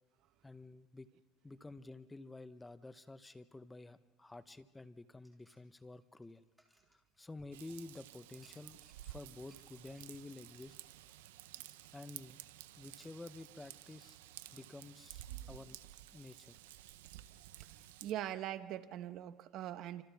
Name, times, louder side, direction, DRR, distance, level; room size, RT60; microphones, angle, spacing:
voice 1, 0.4-1.1 1.4-6.4 6.9-8.8 9.0-10.7 11.9-12.4 12.8-14.2 14.5-15.8 16.1-16.6, left 2 dB, 10° left, 12 dB, 1.0 m, -51 dB
sound 1, 5.2-7.6 8.3-9.1 9.5-9.6 10.0-10.2, right 1 dB, 5° right, 3.1 m, -70 dB
Raindrop / Vehicle horn car horn honking / Trickle dribble, 7.5-18.1, right 14 dB, 90° right, 0.8 m, -53 dB
voice 2, 17.7-20.0, right 12 dB, 60° right, 11 dB, 1.1 m, -42 dB
28.5 x 26.0 x 3.6 m, 1.3 s
supercardioid pair, 100°, 0 cm